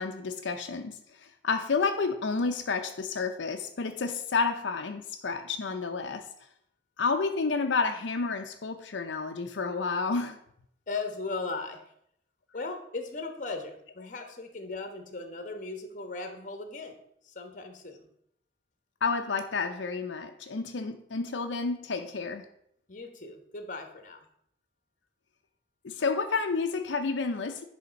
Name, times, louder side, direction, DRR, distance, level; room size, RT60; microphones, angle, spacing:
voice 1, 0.0-6.3 7.0-10.4 19.0-22.5 25.8-27.6, left 4 dB, 85° left, 0.6 m, -30 dB
voice 2, 10.9-11.8 12.5-17.0 17.2-18.1 22.9-24.3, left 3 dB, 45° left, 1.1 m, -37 dB
10.5 x 3.5 x 5.2 m
head